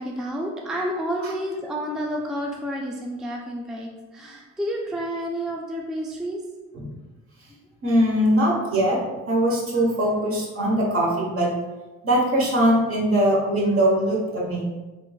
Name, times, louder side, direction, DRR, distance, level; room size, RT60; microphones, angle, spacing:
voice 1, 0.0-6.4, equal, ahead, -1 dB, 0.3 m, -30 dB
voice 2, 7.8-9.0 9.3-11.5 12.0-14.6, right 1 dB, 50° right, -2 dB, 1.1 m, -21 dB
3.3 x 3.1 x 2.3 m, 1.2 s
cardioid pair, 90°, 30 cm